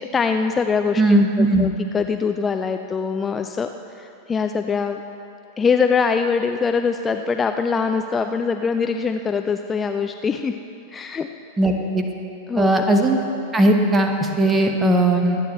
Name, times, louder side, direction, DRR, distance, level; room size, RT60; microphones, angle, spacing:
voice 1, 0.1-3.7 4.0-5.0 5.6-10.6 10.9-11.3 12.5-12.8, left 5 dB, 20° left, 7 dB, 0.4 m, -23 dB
voice 2, 1.0-1.7 11.6-12.0 12.6-13.2 13.5-15.4, right 1 dB, 15° right, 4 dB, 1.3 m, -18 dB
25.0 x 9.5 x 3.3 m, 2.8 s
figure-of-eight pair, 90°, 0 cm